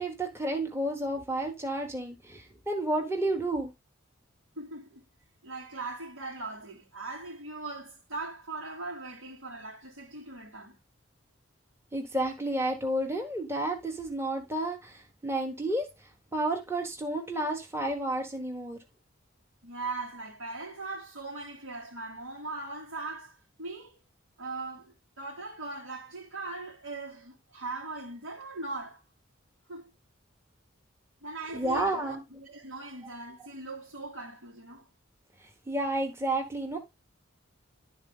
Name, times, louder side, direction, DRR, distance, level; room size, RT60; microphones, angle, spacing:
voice 1, 0.0-3.7 11.9-15.9 16.3-18.8 31.5-32.2 35.7-36.8, right 1 dB, 10° right, 1.3 m, -31 dB
voice 2, 4.6-5.0 5.4-10.8 19.6-24.0 24.4-29.0 29.7-29.9 31.2-34.9, right 3 dB, 85° right, 2.8 m, -40 dB
11.5 x 4.1 x 3.7 m
head